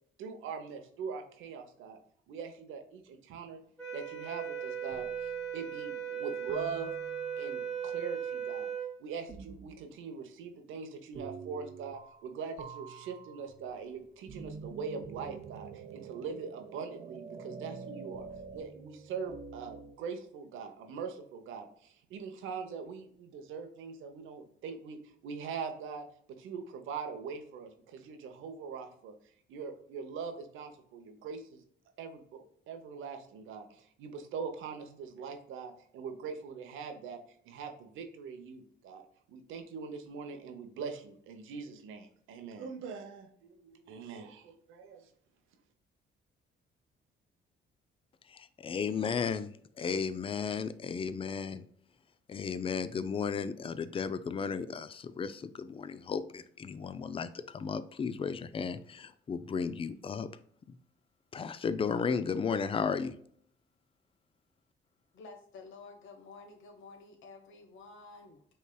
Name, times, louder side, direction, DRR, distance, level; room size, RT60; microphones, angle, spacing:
voice 1, 0.2-2.0 2.3-3.6 3.9-6.9 7.4-8.7 9.0-18.3 18.5-26.1 26.4-29.1 29.5-31.6 32.0-37.2 37.4-39.0 39.3-45.0, right 5 dB, 90° right, 6 dB, 0.8 m, -42 dB
sound 1, 3.8-8.9, right 8 dB, 5° left, 1.4 m, -37 dB
sound 2, 4.9-5.7 6.5-7.6 9.3-9.9 11.1-12.3 12.6-20.0, right 5 dB, 35° right, 0.5 m, -47 dB
voice 2, 48.3-49.5 49.8-51.6 52.3-60.3 61.3-63.1, left 6 dB, 30° left, 13 dB, 0.4 m, -34 dB
voice 3, 65.1-68.4, left 4 dB, 80° left, 4 dB, 1.2 m, -51 dB
5.3 x 3.3 x 2.2 m, 0.63 s
cardioid pair, 90°, 20 cm